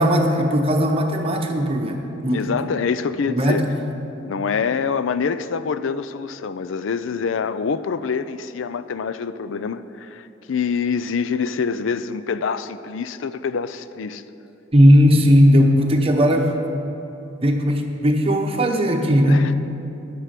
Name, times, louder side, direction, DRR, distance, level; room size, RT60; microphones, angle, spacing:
voice 1, 0.0-2.7 3.3-3.6 14.7-16.5 17.4-19.5, equal, 30° right, 2 dB, 1.0 m, -17 dB
voice 2, 2.3-3.7 4.2-14.2 19.3-19.5, left 5 dB, 75° left, 13 dB, 0.4 m, -25 dB
11.0 x 8.1 x 5.9 m, 2.9 s
head